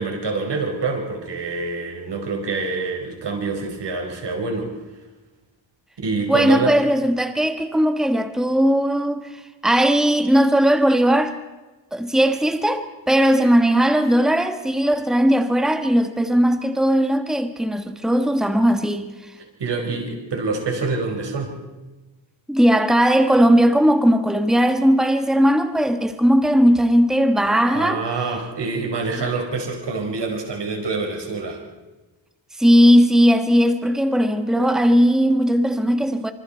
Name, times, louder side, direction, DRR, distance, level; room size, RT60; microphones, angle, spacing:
voice 1, 0.0-4.7 6.0-6.8 19.6-21.5 27.7-31.6, right 3 dB, 60° right, 5.2 m, -26 dB
voice 2, 6.3-11.3 11.9-19.1 22.5-28.0 32.6-36.3, equal, ahead, 1.4 m, -18 dB
26.0 x 25.5 x 4.5 m
cardioid pair, 95°, 46 cm